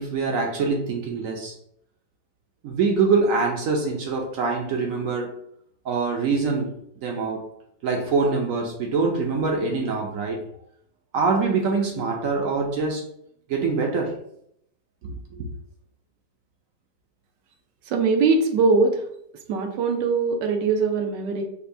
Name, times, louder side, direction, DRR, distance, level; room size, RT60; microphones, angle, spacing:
voice 1, 0.0-1.5 2.6-5.3 5.8-6.7 7.0-7.4 7.8-10.4 11.1-13.1 13.5-14.2 15.0-15.5, right 4 dB, 70° right, 2 dB, 0.8 m, -24 dB
voice 2, 17.9-19.0 19.5-21.4, right 4 dB, 90° right, 4 dB, 1.3 m, -21 dB
5.4 x 2.2 x 2.6 m, 0.72 s
omnidirectional pair, 1.8 m